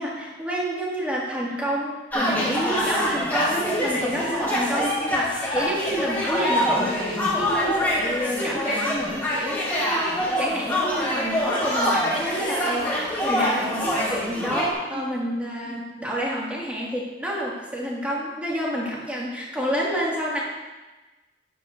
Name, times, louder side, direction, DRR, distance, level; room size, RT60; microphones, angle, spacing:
voice 1, 0.0-20.4, equal, 5° right, -5 dB, 2.0 m, -29 dB
sound 1, 2.1-14.7, left 1 dB, 10° left, 2.2 m, -25 dB
12.0 x 10.0 x 2.6 m, 1.2 s
head